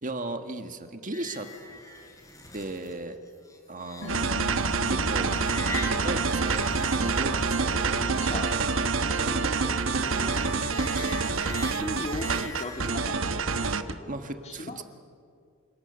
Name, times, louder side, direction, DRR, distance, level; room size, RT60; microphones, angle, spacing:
voice 1, 0.0-1.5 2.5-3.2 3.7-4.5 4.9-5.4 5.8-6.7 7.0-7.7 14.1-14.8, right 2 dB, 40° right, 7 dB, 1.7 m, -36 dB
sound 1, 1.1-12.9, left 2 dB, 15° left, 4.2 m, -43 dB
sound 2, 4.0-7.3 7.6-7.7, left 7 dB, 70° left, 5.9 m, -44 dB
sound 3, 4.1-13.9, right 4 dB, 65° right, 1.2 m, -27 dB
voice 2, 7.9-8.6 9.0-10.4 11.5-14.8, left 2 dB, 30° left, 5 dB, 1.9 m, -40 dB
29.0 x 27.0 x 7.0 m, 2.3 s
head